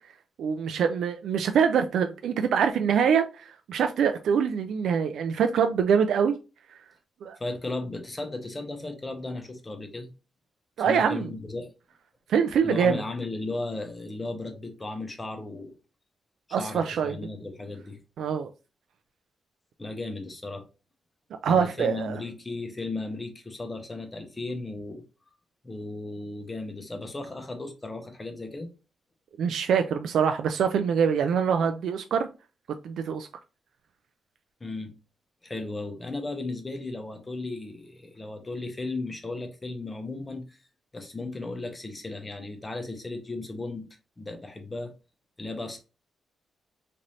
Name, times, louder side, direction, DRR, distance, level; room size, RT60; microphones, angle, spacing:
voice 1, 0.4-6.4 7.2-7.4 10.8-11.3 12.3-13.0 16.5-17.1 18.2-18.5 21.4-22.2 29.4-32.3 32.8-33.3, right 7 dB, 80° right, 0.3 m, -24 dB
voice 2, 7.4-10.1 10.9-11.7 12.6-15.8 16.6-18.0 19.8-20.6 21.4-25.0 25.6-28.7 34.6-34.9 35.4-40.6 40.9-43.9 44.2-44.9 45.4-45.8, left 2 dB, 15° left, 0.7 m, -35 dB
3.1 x 2.6 x 4.0 m
wide cardioid pair, 180°, 0 cm